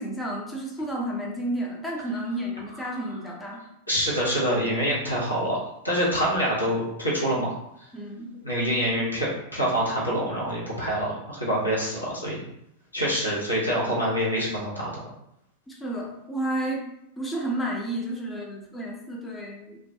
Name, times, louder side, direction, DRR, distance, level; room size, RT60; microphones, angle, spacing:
voice 1, 0.0-3.6 7.9-8.3 15.7-16.8 17.2-19.8, right 1 dB, 10° left, -2 dB, 0.4 m, -31 dB
voice 2, 3.9-5.6 5.8-7.5 8.4-12.4 12.9-14.9, equal, 85° left, -5 dB, 0.8 m, -26 dB
2.3 x 2.2 x 2.6 m, 0.78 s
figure-of-eight pair, 90°, 0 cm